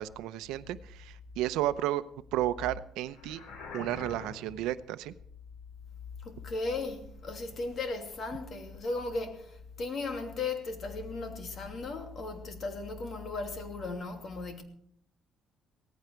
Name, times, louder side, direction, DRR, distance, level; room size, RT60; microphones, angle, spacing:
voice 1, 0.0-2.0 2.3-3.4 3.7-5.1, right 14 dB, 90° right, 0.8 m, -32 dB
sound 1, 3.1-4.7, left 3 dB, 80° left, 4.6 m, -45 dB
voice 2, 6.2-14.6, left 3 dB, 45° left, 2.8 m, -36 dB
17.5 x 15.0 x 4.6 m
cardioid pair, 130°, 0 cm